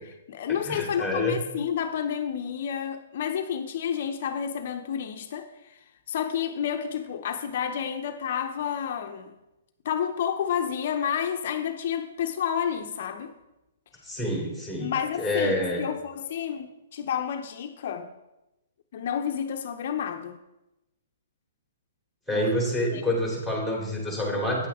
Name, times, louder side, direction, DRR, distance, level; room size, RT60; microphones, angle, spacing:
voice 1, 0.0-5.8 6.1-9.3 9.8-13.3 14.8-18.1 18.9-20.4 22.3-22.5 22.9-23.0, left 8 dB, 55° left, 5 dB, 0.7 m, -30 dB
voice 2, 0.7-1.4 14.0-14.9 15.2-15.8 22.3-24.7, left 1 dB, 5° right, -3 dB, 3.1 m, -27 dB
9.3 x 8.3 x 3.6 m, 0.97 s
hypercardioid pair, 140°, 0 cm